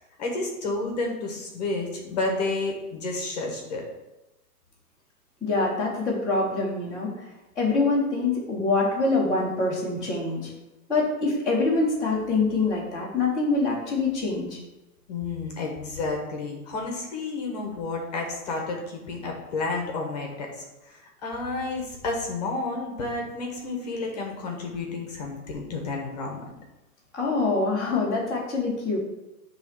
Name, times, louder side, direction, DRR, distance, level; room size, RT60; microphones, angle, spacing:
voice 1, 0.2-3.8 15.1-26.4, left 3 dB, 25° left, 1 dB, 1.0 m, -31 dB
voice 2, 5.4-7.1 7.6-10.5 10.9-14.6 27.1-29.0, left 3 dB, ahead, -15 dB, 0.9 m, -25 dB
9.4 x 3.2 x 5.8 m, 1.0 s
hypercardioid pair, 175°, 46 cm